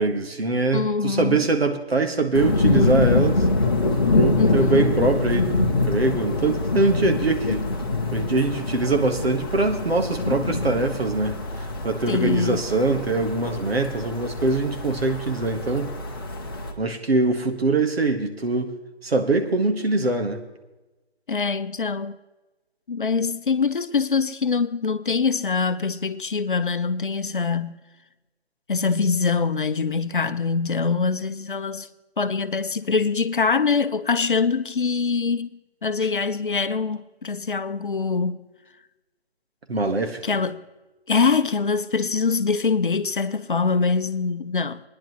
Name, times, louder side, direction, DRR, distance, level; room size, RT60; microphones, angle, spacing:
voice 1, 0.0-3.4 4.1-7.7 8.1-15.9 16.8-18.7 19.0-20.4 39.7-40.2, right 3 dB, 70° right, 1.7 m, -23 dB
voice 2, 0.7-1.4 4.4-4.9 12.1-12.6 21.3-22.2 22.9-27.8 28.7-31.9 32.2-35.5 35.8-38.4 40.2-40.6 41.1-44.8, left 4 dB, 50° left, 0.7 m, -24 dB
sound 1, 2.3-16.7, left 2 dB, 20° left, 0.9 m, -24 dB
20.0 x 10.5 x 3.2 m
figure-of-eight pair, 165°, 32 cm